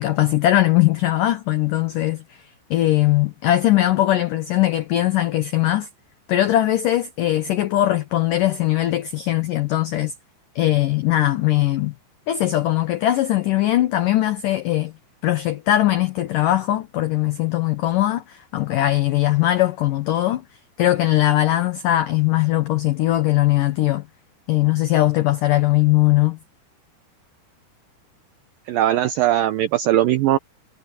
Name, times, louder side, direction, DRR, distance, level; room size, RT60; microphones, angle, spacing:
voice 1, 0.0-2.4 2.7-5.9 6.3-10.1 10.6-11.9 12.3-14.9 15.2-20.4 20.8-24.1 24.5-26.4, left 14 dB, 80° left, 1.9 m, -20 dB
voice 2, 28.7-30.4, right 13 dB, 80° right, 2.0 m, -19 dB
omnidirectional pair, 5.1 m